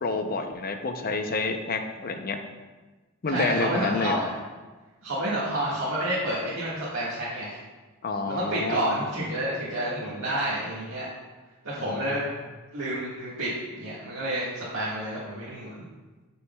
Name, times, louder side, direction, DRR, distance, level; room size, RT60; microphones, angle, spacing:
voice 1, 0.0-2.4 3.2-4.2 8.0-9.1 11.8-12.1, left 3 dB, 45° left, 6 dB, 0.6 m, -29 dB
voice 2, 3.3-4.3 5.0-7.6 8.3-11.0 11.6-12.2 12.7-15.8, right 1 dB, 80° right, -9 dB, 1.6 m, -29 dB
9.4 x 6.3 x 2.3 m, 1.3 s
head